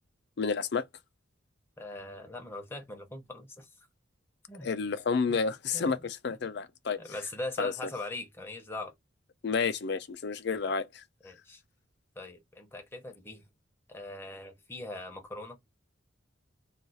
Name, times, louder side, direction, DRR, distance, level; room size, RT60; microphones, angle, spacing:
voice 1, 0.4-0.8 4.6-7.0 7.6-7.7 9.4-11.0, left 5 dB, 55° left, 0.4 m, -30 dB
voice 2, 1.8-3.7 4.5-4.7 5.7-5.9 7.0-8.9 11.2-11.6 12.2-13.4 13.9-15.6, left 2 dB, 10° left, 0.6 m, -41 dB
2.4 x 2.3 x 4.0 m
head